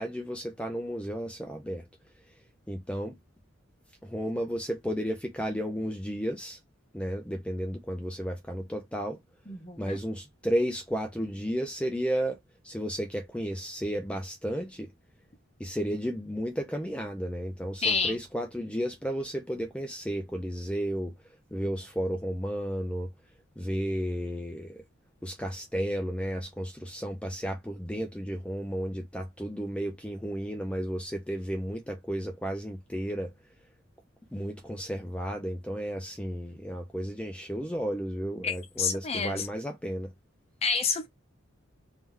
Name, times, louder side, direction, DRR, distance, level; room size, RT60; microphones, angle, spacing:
voice 1, 0.0-1.9 2.7-3.2 4.0-6.6 6.9-9.2 9.8-12.4 12.6-14.9 15.6-21.1 21.5-23.1 23.6-24.8 25.2-33.3 34.3-40.1, equal, 5° left, 0.4 m, -33 dB
voice 2, 9.5-10.0 17.8-18.2 38.4-39.5 40.6-41.1, left 5 dB, 30° left, 0.8 m, -29 dB
3.3 x 2.8 x 3.6 m
head